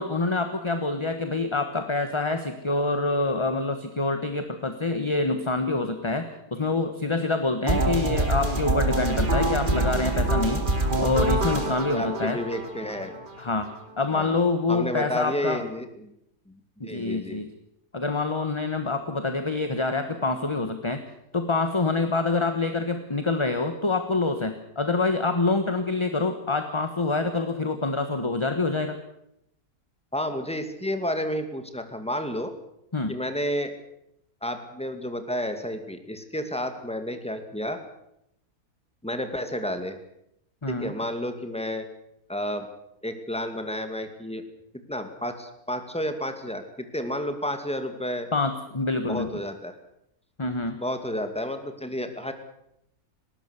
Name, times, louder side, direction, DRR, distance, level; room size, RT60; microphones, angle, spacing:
voice 1, 0.0-10.6 11.0-12.4 13.4-13.7 14.0-15.6 16.8-17.5 17.9-21.0 21.3-29.0 32.9-33.1 40.6-40.9 48.3-49.3 50.4-50.8, left 3 dB, 20° left, 8 dB, 1.3 m, -26 dB
sound 1, 7.7-13.6, right 1 dB, 30° right, 2.8 m, -25 dB
voice 2, 11.6-13.1 14.1-14.4 14.7-16.1 16.5-17.4 30.1-32.5 33.1-33.8 34.4-37.8 39.0-40.0 40.7-41.9 42.3-42.7 43.0-44.4 44.9-48.3 49.1-49.8 50.8-52.3, equal, 5° left, 7 dB, 2.2 m, -31 dB
20.0 x 18.0 x 8.2 m, 0.78 s
omnidirectional pair, 1.6 m